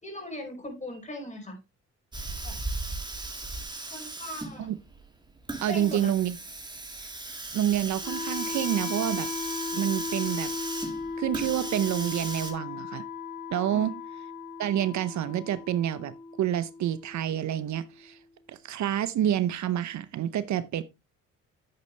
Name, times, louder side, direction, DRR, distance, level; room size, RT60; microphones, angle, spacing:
voice 1, 0.0-1.6 2.4-2.6 3.9-4.7 5.7-6.1 13.7-14.0, left 1 dB, 25° left, 5.3 m, -39 dB
Hiss, 2.1-12.5, right 2 dB, 15° right, 2.6 m, -37 dB
voice 2, 5.6-6.4 7.0-7.1 7.5-9.3 9.7-10.5 11.2-13.0 13.5-13.9 14.6-18.2 18.5-20.8, right 11 dB, 65° right, 0.8 m, -28 dB
Wind instrument woodwind instrument, 8.0-18.0, left 4 dB, 80° left, 3.6 m, -37 dB
10.0 x 8.3 x 3.3 m
cardioid pair, 90°, 30 cm